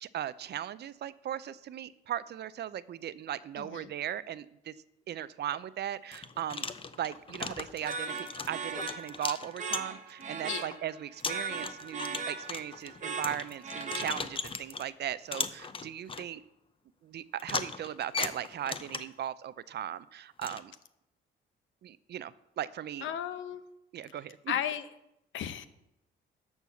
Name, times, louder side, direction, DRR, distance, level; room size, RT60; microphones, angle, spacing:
voice 1, 0.0-4.7 5.1-6.7 6.9-16.4 17.0-20.7 21.8-23.1 23.9-24.5, right 11 dB, 55° right, 16 dB, 0.5 m, -38 dB
voice 2, 3.6-3.9 10.4-10.8 23.0-23.6 24.5-24.8 25.3-25.7, left 10 dB, 80° left, 11 dB, 0.8 m, -34 dB
sound 1, 5.4-5.6 6.1-10.2 10.7-10.8 11.2-14.9 15.3-16.3 17.4-19.2 20.4-20.6, left 4 dB, 25° left, 0.7 m, -38 dB
sound 2, 7.8-14.6, right 4 dB, 40° right, 1.2 m, -39 dB
12.5 x 4.7 x 7.0 m, 0.86 s
cardioid pair, 90°, 20 cm